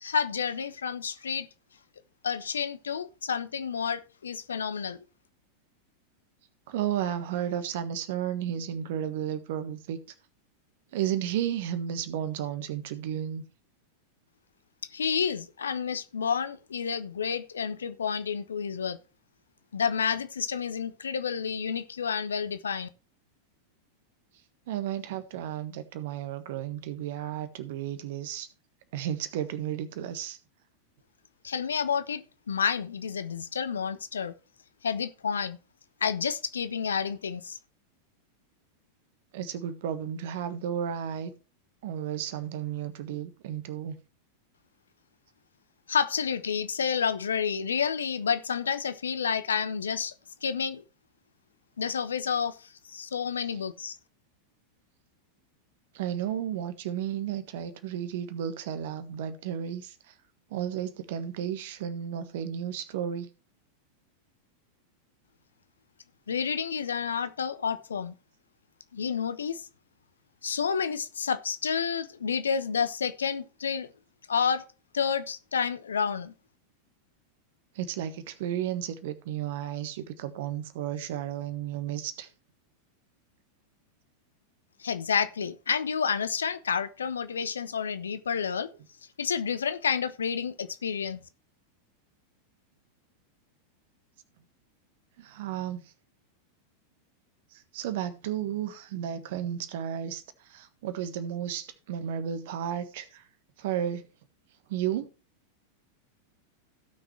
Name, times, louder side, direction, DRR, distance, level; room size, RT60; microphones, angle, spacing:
voice 1, 0.0-1.5 2.2-5.0 14.9-19.0 19.7-22.9 31.4-32.2 32.5-34.3 34.8-35.6 36.0-37.6 45.9-50.1 50.4-50.8 51.8-52.5 52.9-53.9 66.3-68.1 68.9-69.6 70.4-73.9 74.3-74.6 74.9-76.3 84.8-88.7 89.2-91.2, left 6 dB, 70° left, 0.9 m, -29 dB
voice 2, 6.7-10.0 10.9-13.4 24.7-28.5 28.9-30.4 39.3-41.3 41.8-43.9 53.4-53.6 55.9-60.1 60.5-63.3 77.7-82.3 95.2-95.8 97.5-103.3 103.6-104.1 104.7-105.1, right 10 dB, 55° right, 1.4 m, -33 dB
16.5 x 6.2 x 3.3 m
figure-of-eight pair, 90°, 0 cm